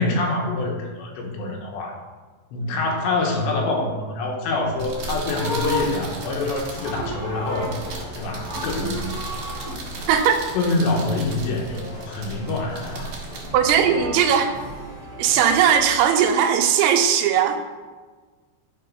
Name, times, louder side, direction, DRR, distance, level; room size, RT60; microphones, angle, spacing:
voice 1, 0.0-2.0 2.5-7.8 8.2-9.1 10.6-13.1, left 2 dB, 75° left, 1 dB, 3.4 m, -25 dB
Pills in Bottle Closed, 4.6-14.5, right 4 dB, 55° right, 2.6 m, -37 dB
Livestock farm animals working animals, 4.7-8.1 8.4-9.7 13.5-14.7, left 1 dB, 15° right, 0.8 m, -33 dB
sound 1, 5.6-15.8, equal, 60° left, 1.1 m, -39 dB
voice 2, 13.5-14.5 15.2-17.6, right 8 dB, 85° right, 5 dB, 3.1 m, -18 dB
12.0 x 4.5 x 5.5 m, 1.4 s
omnidirectional pair, 5.2 m